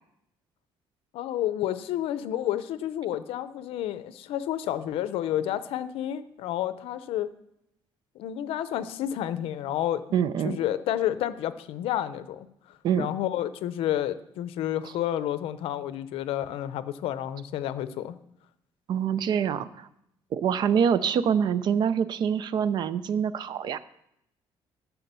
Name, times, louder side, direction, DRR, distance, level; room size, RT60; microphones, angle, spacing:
voice 1, 1.1-7.3 8.2-10.0 10.4-12.5 13.0-18.2, left 11 dB, 75° left, 14 dB, 0.6 m, -30 dB
voice 2, 10.1-10.6 12.8-13.1 18.9-19.9 20.3-23.8, right 7 dB, 50° right, 15 dB, 0.5 m, -25 dB
11.5 x 5.8 x 6.8 m, 0.78 s
cardioid pair, 170°, 10 cm